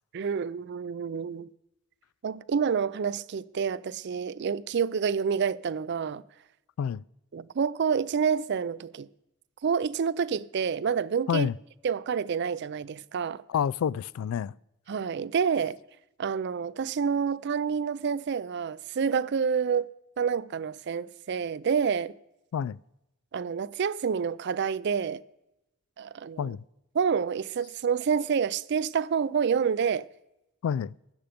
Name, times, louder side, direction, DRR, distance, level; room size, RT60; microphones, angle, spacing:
voice 1, 0.1-1.5 2.2-6.2 7.3-9.1 9.6-11.5 11.8-13.4 14.9-15.8 16.2-19.9 20.2-22.1 23.3-25.2 26.0-26.5 26.9-30.1, right 6 dB, 55° right, 0.4 m, -28 dB
voice 2, 13.5-14.5 22.5-22.8 26.4-26.6 30.6-30.9, left 8 dB, 90° left, 0.3 m, -28 dB
13.5 x 9.0 x 5.1 m
head